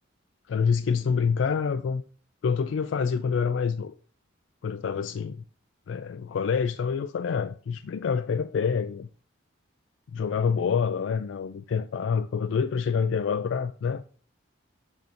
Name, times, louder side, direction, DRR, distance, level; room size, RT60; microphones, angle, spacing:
voice 1, 0.5-2.0 2.4-3.9 4.6-5.4 5.9-9.1 10.1-14.0, left 6 dB, 75° left, 0.3 m, -27 dB
7.9 x 2.6 x 5.2 m
head